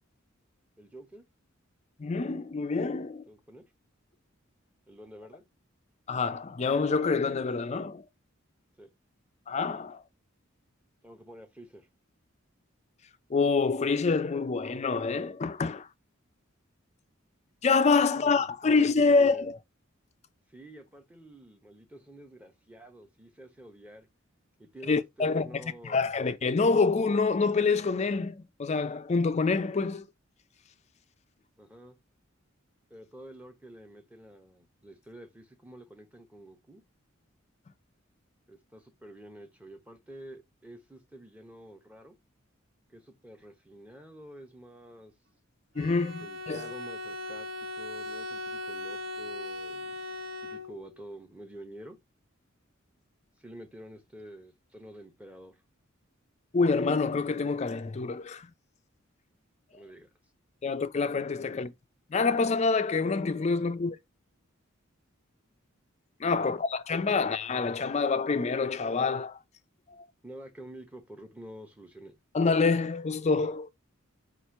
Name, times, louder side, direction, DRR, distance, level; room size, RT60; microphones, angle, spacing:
voice 1, 0.8-1.2 3.3-3.6 4.9-5.4 8.8-8.9 11.0-11.9 18.1-19.5 20.5-24.1 24.6-26.1 31.6-32.0 32.9-36.8 38.5-42.2 42.9-45.1 46.2-50.0 50.4-52.0 53.4-55.6 59.7-60.1 61.5-61.6 66.3-66.5 70.2-72.1, right 1 dB, 5° right, 0.8 m, -49 dB
voice 2, 2.0-3.2 6.1-8.0 9.5-10.0 13.3-15.9 17.6-19.6 24.9-25.5 25.8-30.1 45.8-46.6 56.5-58.5 60.6-61.7 62.1-64.0 66.2-69.4 70.0-70.1 72.3-73.7, left 4 dB, 35° left, 0.4 m, -26 dB
Bowed string instrument, 45.8-51.0, left 2 dB, 50° right, 1.0 m, -38 dB
4.3 x 2.5 x 4.5 m
head